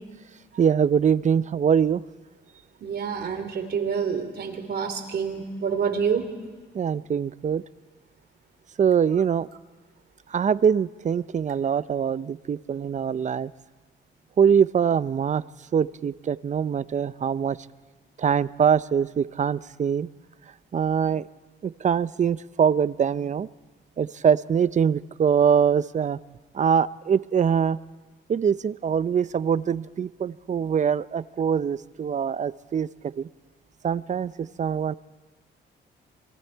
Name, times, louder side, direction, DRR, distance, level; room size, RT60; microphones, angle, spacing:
voice 1, 0.6-2.0 6.7-7.6 8.8-9.5 10.3-13.5 14.4-15.4 15.7-17.6 18.2-20.1 20.7-21.2 21.6-23.5 24.0-26.2 26.5-27.8 28.3-32.9 33.2-33.3 33.8-34.9, right 7 dB, 35° right, 17 dB, 0.6 m, -23 dB
voice 2, 2.8-6.2, right 6 dB, 55° right, 6 dB, 3.2 m, -27 dB
26.5 x 22.5 x 4.6 m, 1.3 s
cardioid pair, 90°, 20 cm